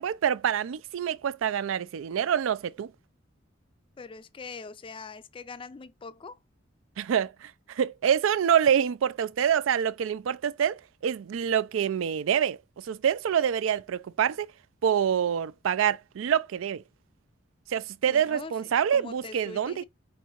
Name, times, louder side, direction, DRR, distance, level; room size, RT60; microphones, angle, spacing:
voice 1, 0.0-2.9 7.0-14.5 14.8-16.8 17.7-19.8, right 8 dB, 85° right, 0.3 m, -26 dB
voice 2, 4.0-6.4 18.1-18.5 18.9-19.8, left 4 dB, 25° left, 0.3 m, -42 dB
4.7 x 3.0 x 2.9 m
head